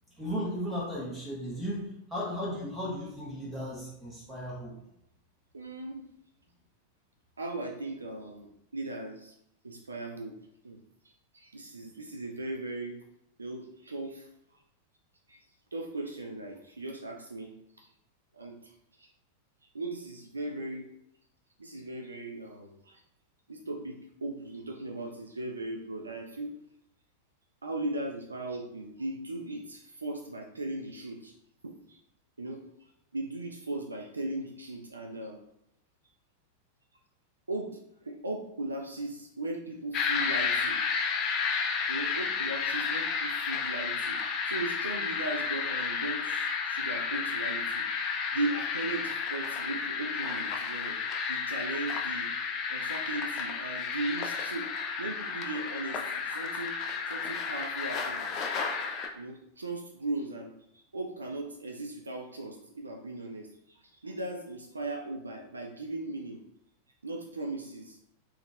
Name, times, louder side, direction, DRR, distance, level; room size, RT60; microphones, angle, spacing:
voice 1, 0.2-4.7, equal, 15° right, -5 dB, 0.7 m, -35 dB
voice 2, 5.5-6.1 7.4-9.4 9.6-10.4 10.6-10.8 11.0-13.0 13.4-14.3 15.3-15.5 15.7-17.9 18.3-19.1 19.7-20.9 21.6-23.0 23.5-26.5 27.6-31.3 31.6-32.0 32.4-35.4 37.5-40.8 41.3-41.5 41.7-44.2 44.5-47.9 48.3-51.0 51.3-52.3 52.7-54.7 55.0-58.5 59.1-66.4 67.0-68.0, right 2 dB, 75° right, 2 dB, 0.3 m, -38 dB
sound 1, 39.9-59.1, left 5 dB, 35° left, 0.4 m, -32 dB
3.6 x 3.0 x 2.3 m, 0.79 s
figure-of-eight pair, 90°, 0 cm